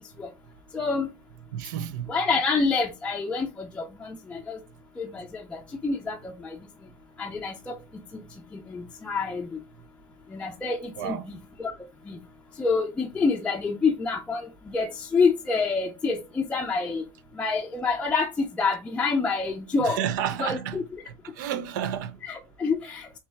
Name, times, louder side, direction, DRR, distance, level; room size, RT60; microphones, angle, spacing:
voice 1, 0.7-1.1 2.1-4.6 5.0-6.6 7.2-7.8 8.1-8.2 8.5-9.6 10.3-11.7 12.1-12.2 12.6-17.0 17.3-20.0 20.4-20.8 22.2-23.2, left 4 dB, 10° left, 0.5 m, -27 dB
voice 2, 1.5-2.1 11.0-11.3 19.8-20.8 21.1-22.2, right 9 dB, 85° right, 0.5 m, -31 dB
4.2 x 3.1 x 3.3 m
supercardioid pair, 135°, 10 cm